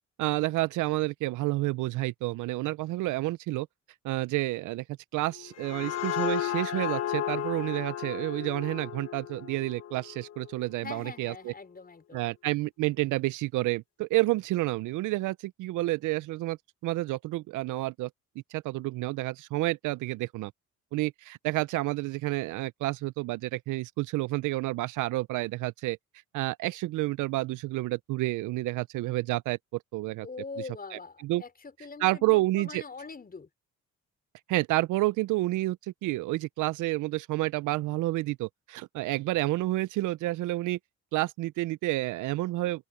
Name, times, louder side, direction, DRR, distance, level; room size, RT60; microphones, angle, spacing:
voice 1, 0.2-3.7 4.0-4.8 5.1-11.5 12.1-16.6 16.8-18.1 18.5-20.5 20.9-26.0 26.3-30.3 30.9-31.4 32.0-32.8 34.5-40.8 41.1-42.9, right 19 dB, 85° right, 0.5 m, -29 dB
sound 1, 5.3-10.8, left 11 dB, 55° left, 1.2 m, -34 dB
voice 2, 10.8-12.2 30.2-33.5, left 4 dB, 30° left, 5.2 m, -43 dB
open air
cardioid pair, 90°, 30 cm